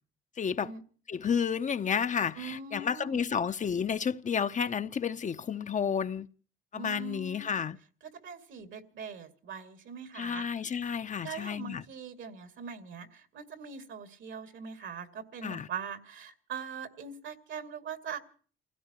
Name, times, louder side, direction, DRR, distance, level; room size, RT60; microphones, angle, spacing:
voice 1, 0.4-0.7 1.1-6.3 6.7-7.8 10.1-11.8 15.4-15.7, left 7 dB, 40° left, 0.7 m, -31 dB
voice 2, 2.4-3.2 6.7-7.6 8.2-10.5 11.2-18.2, right 6 dB, 70° right, 2.4 m, -42 dB
29.0 x 16.0 x 3.0 m
cardioid pair, 90°, 20 cm